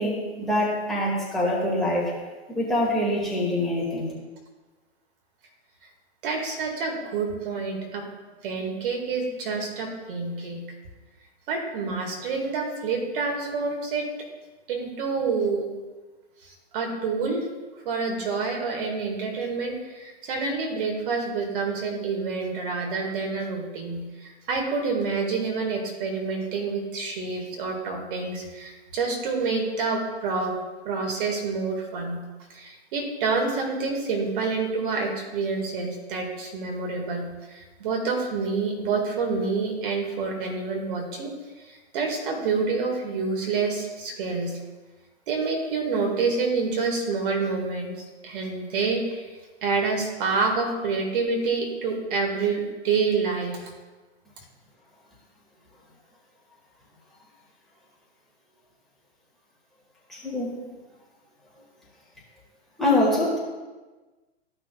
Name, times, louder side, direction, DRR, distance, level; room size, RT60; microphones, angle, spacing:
voice 1, 0.0-2.1 2.5-4.1 60.1-60.6 62.8-63.4, left 1 dB, ahead, -5 dB, 2.1 m, -24 dB
voice 2, 6.2-8.1 8.4-10.6 11.5-14.1 14.7-15.7 16.4-17.4 17.8-30.6 30.8-32.2 32.5-44.6 45.3-47.9 48.2-49.2 49.6-53.7, right 4 dB, 50° right, 1 dB, 2.0 m, -28 dB
15.0 x 5.9 x 2.4 m, 1.3 s
hypercardioid pair, 135°, 33 cm